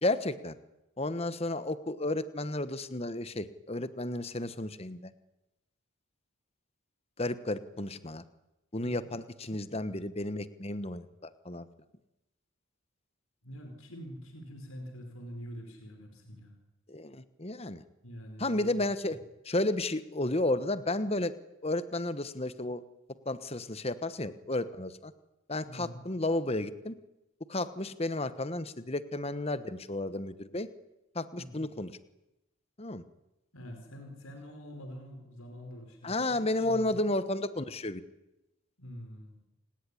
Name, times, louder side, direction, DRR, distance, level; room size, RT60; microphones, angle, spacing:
voice 1, 0.0-0.5 1.0-5.1 7.2-8.2 8.7-11.7 16.9-17.8 18.4-19.2 19.4-21.3 21.6-22.8 23.2-25.1 25.5-26.9 27.5-30.7 31.1-31.9 32.8-33.0 36.0-38.0, left 2 dB, 30° left, 13 dB, 1.2 m, -32 dB
voice 2, 13.4-16.5 18.0-18.8 25.6-26.0 31.3-31.7 33.5-37.0 38.8-39.4, equal, 85° left, 5 dB, 4.9 m, -45 dB
28.5 x 19.5 x 10.0 m, 0.94 s
head